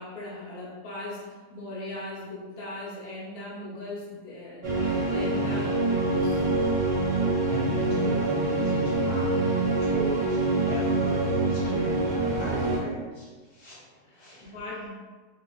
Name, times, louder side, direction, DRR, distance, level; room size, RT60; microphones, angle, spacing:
voice 1, 0.0-6.4 14.0-14.9, left 1 dB, 50° left, -6 dB, 0.7 m, -39 dB
sound 1, 4.6-12.8, right 2 dB, 70° right, 0.6 m, -25 dB
voice 2, 7.5-10.4 10.7-14.9, right 2 dB, 75° left, -7 dB, 1.2 m, -37 dB
2.8 x 2.5 x 2.3 m, 1.4 s
omnidirectional pair, 1.8 m